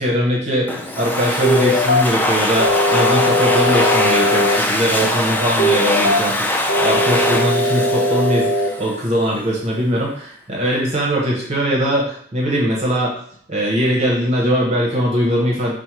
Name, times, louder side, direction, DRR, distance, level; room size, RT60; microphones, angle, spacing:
voice 1, 0.0-13.2 13.5-15.7, equal, 35° right, -2 dB, 0.8 m, -20 dB
Domestic sounds home sounds, 0.7-9.1, left 1 dB, 10° left, 0.4 m, -22 dB
sound 1, 1.4-2.0 2.6-4.6 5.6-6.2 6.7-8.7, left 1 dB, 85° left, 0.7 m, -18 dB
4.3 x 2.1 x 4.6 m, 0.62 s
head